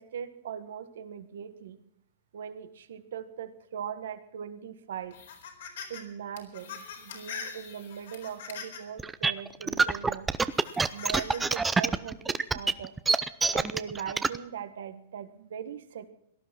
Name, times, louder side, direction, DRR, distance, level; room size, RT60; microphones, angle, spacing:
voice 1, 0.0-1.8 2.3-5.2 5.9-10.3 10.9-12.9 13.5-16.1, right 8 dB, 80° right, 11 dB, 1.6 m, -40 dB
sound 1, 5.1-6.0 6.4-9.0 9.6-9.7 10.5-11.4, left 6 dB, 75° left, 4.2 m, -42 dB
sound 2, 9.0-14.4, right 4 dB, 10° right, 0.6 m, -25 dB
18.0 x 11.5 x 6.0 m, 0.76 s
hypercardioid pair, 140°, 0 cm